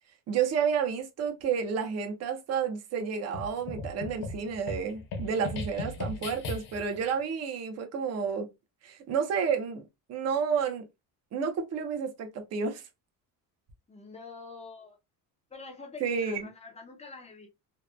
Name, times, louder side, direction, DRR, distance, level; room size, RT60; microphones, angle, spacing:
voice 1, 0.3-8.5 8.8-10.8 11.3-12.8 16.0-16.5, right 6 dB, 40° right, 0.6 m, -30 dB
sound 1, 3.3-7.0, left 3 dB, 60° left, 0.9 m, -37 dB
voice 2, 13.9-15.0 15.5-17.5, left 4 dB, 15° left, 0.5 m, -46 dB
2.9 x 2.1 x 2.2 m
cardioid pair, 155°, 39 cm